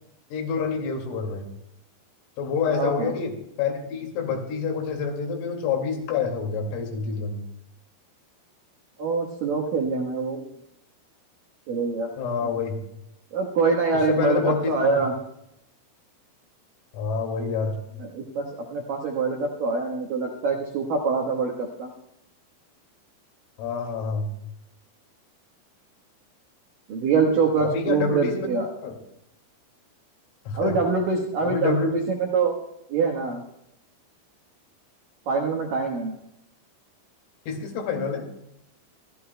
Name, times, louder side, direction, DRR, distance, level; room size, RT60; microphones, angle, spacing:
voice 1, 0.3-1.4 2.4-7.4 12.2-12.8 13.9-15.0 16.9-17.8 23.6-24.3 27.6-28.5 28.8-28.9 30.5-30.7 31.4-31.9 37.5-38.2, left 5 dB, 80° left, 1 dB, 5.0 m, -27 dB
voice 2, 2.7-3.1 9.0-10.5 11.7-12.1 13.3-15.1 18.0-18.5 18.7-21.9 26.9-28.7 30.6-32.6 32.9-33.4 35.3-36.2, right 4 dB, 70° right, 1 dB, 2.1 m, -24 dB
24.5 x 15.5 x 2.2 m, 0.78 s
omnidirectional pair, 5.9 m